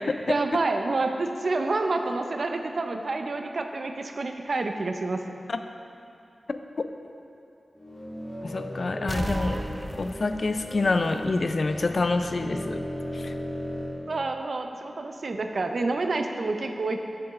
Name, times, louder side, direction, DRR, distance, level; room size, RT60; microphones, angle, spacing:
voice 1, 0.3-5.3 8.9-9.6 14.1-17.0, right 3 dB, 70° right, 5 dB, 0.5 m, -28 dB
sound 1, 7.7-14.0, equal, 25° left, 1.6 m, -37 dB
voice 2, 8.4-9.6 9.9-12.8 13.1-13.3, left 3 dB, 65° left, 8 dB, 0.4 m, -27 dB
sound 2, 9.1-11.7 12.0-12.1, equal, 5° right, 0.4 m, -35 dB
8.1 x 6.7 x 3.6 m, 2.6 s
cardioid pair, 45°, 0 cm